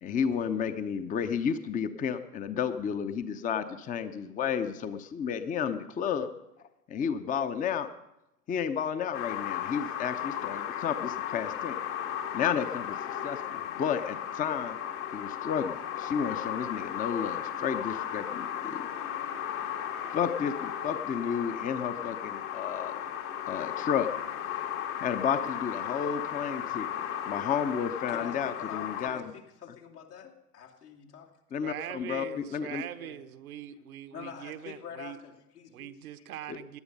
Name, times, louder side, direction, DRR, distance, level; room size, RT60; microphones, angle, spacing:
voice 1, 0.0-6.3 6.9-7.9 8.5-11.8 12.3-14.8 15.1-18.9 20.1-22.9 23.5-24.1 25.0-26.9 27.3-29.2 31.5-32.8 36.5-36.6, left 7 dB, 15° left, 10 dB, 0.7 m, -32 dB
sound 1, 9.1-29.1, left 10 dB, 60° left, 1.9 m, -35 dB
voice 2, 28.0-31.3 33.0-33.2 34.1-36.3, left 8 dB, 75° left, -2 dB, 2.7 m, -45 dB
voice 3, 31.6-35.2 35.7-36.8, right 11 dB, 65° right, 10 dB, 1.0 m, -42 dB
18.0 x 11.0 x 5.4 m, 0.90 s
figure-of-eight pair, 90°, 47 cm